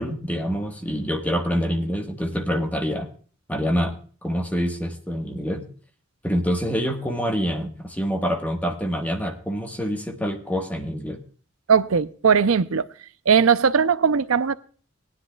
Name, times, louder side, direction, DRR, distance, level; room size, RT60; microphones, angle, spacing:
voice 1, 0.0-3.1 3.5-3.9 4.2-5.6 6.2-11.2, equal, 10° left, 1.3 m, -26 dB
voice 2, 11.7-12.8 13.3-14.5, right 6 dB, 90° right, 0.6 m, -19 dB
19.0 x 10.0 x 2.3 m
head